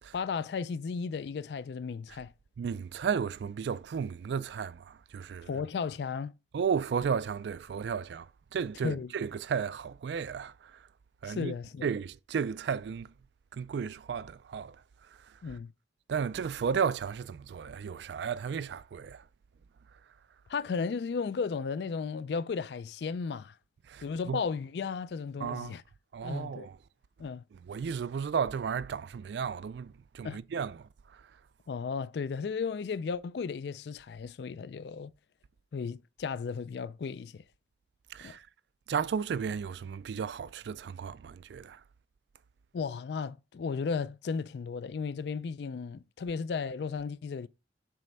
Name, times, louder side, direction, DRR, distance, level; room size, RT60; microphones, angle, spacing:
voice 1, 0.1-2.3 5.5-6.3 8.8-9.1 11.2-11.9 15.4-15.7 20.5-23.6 24.0-25.8 26.2-26.7 27.2-27.4 30.2-30.4 31.7-35.1 35.7-37.4 38.2-38.3 42.7-47.5, left 5 dB, 65° left, 0.4 m, -34 dB
voice 2, 2.6-5.5 6.5-10.9 11.2-11.5 11.8-13.1 13.5-15.6 16.1-19.3 23.9-24.4 25.4-25.8 26.1-26.8 27.5-31.3 38.1-38.5 38.9-41.8, right 6 dB, 70° right, 0.3 m, -34 dB
7.6 x 3.2 x 5.3 m
head